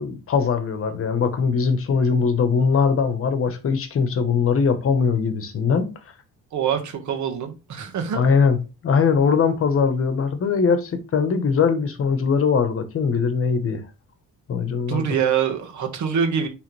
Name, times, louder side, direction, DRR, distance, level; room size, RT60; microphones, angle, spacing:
voice 1, 0.0-5.9 8.1-8.6 8.8-13.8 14.5-15.0, left 5 dB, 40° left, 1.1 m, -21 dB
voice 2, 6.5-8.2 14.9-16.5, right 7 dB, 55° right, 1.6 m, -24 dB
9.6 x 3.5 x 3.3 m
cardioid pair, 150°, 35 cm